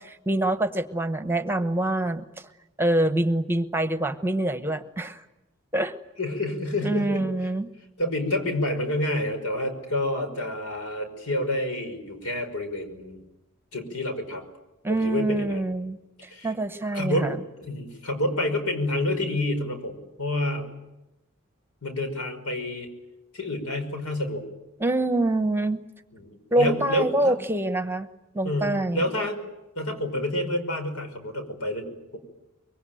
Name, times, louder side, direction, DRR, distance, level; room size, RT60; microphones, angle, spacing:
voice 1, 0.0-2.2 2.8-5.2 5.7-5.9 6.8-7.7 14.8-17.4 24.8-25.8 26.5-28.1 28.3-29.0, right 1 dB, 10° right, 10 dB, 1.1 m, -25 dB
voice 2, 6.2-7.5 8.0-13.2 13.7-14.4 14.9-15.7 16.3-16.5 16.9-20.7 21.8-22.9 23.3-24.4 26.1-27.4 28.4-29.4 29.8-32.2, left 1 dB, 80° left, 7 dB, 5.4 m, -28 dB
25.0 x 23.0 x 9.2 m, 0.96 s
head